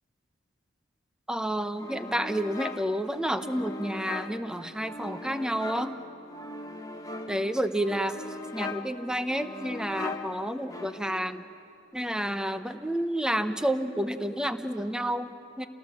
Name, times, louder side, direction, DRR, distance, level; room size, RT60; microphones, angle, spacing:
voice 1, 1.3-5.9 7.3-8.2 8.5-11.4 11.9-15.7, right 1 dB, 5° right, 10 dB, 0.8 m, -30 dB
sound 1, 1.8-11.3, left 2 dB, 20° left, 1.2 m, -40 dB
28.5 x 19.0 x 7.4 m, 2.8 s
head